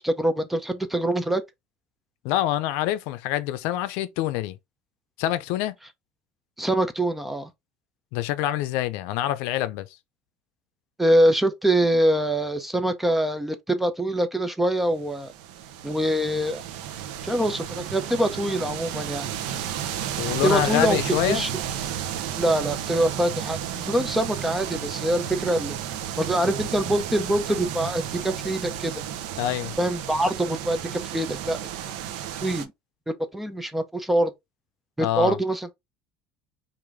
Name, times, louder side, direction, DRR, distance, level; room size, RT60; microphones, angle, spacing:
voice 1, 0.0-1.4 6.6-7.5 11.0-15.3 15.8-16.6 17.2-19.3 20.4-21.0 21.3-21.5 22.4-25.8 26.2-29.0 29.8-30.8 31.1-31.6 32.4-32.7 33.1-34.3 35.0-35.7, right 1 dB, 5° right, 0.6 m, -24 dB
voice 2, 2.2-4.6 5.2-5.7 8.1-9.9 20.2-21.5 29.4-29.7 35.0-35.4, left 13 dB, 75° left, 0.5 m, -26 dB
sound 1, 15.1-32.6, right 10 dB, 85° right, 0.7 m, -33 dB
4.8 x 2.6 x 3.4 m
cardioid pair, 145°, 4 cm